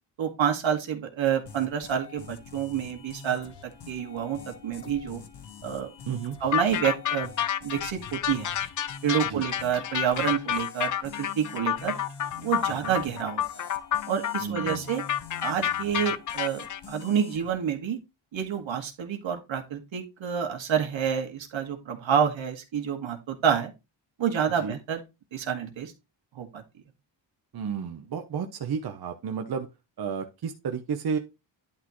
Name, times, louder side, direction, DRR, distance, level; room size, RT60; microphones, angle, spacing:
voice 1, 0.2-5.2 5.6-5.9 6.4-7.3 7.6-8.5 9.0-12.0 12.4-13.4 14.1-15.0 15.4-18.0 18.3-23.7 24.2-25.0 25.3-25.9 26.4-26.6, right 8 dB, 80° right, 4 dB, 2.0 m, -28 dB
sound 1, 1.5-17.5, left 6 dB, 60° left, 1.4 m, -46 dB
voice 2, 6.1-6.4 9.3-9.4 12.8-12.9 14.4-14.8 24.6-24.8 27.5-29.7 30.0-31.2, right 6 dB, 55° right, 5 dB, 0.9 m, -32 dB
sound 2, 6.5-16.8, left 10 dB, 45° left, 0.5 m, -29 dB
11.0 x 5.9 x 3.1 m, 0.25 s
wide cardioid pair, 165°, 46 cm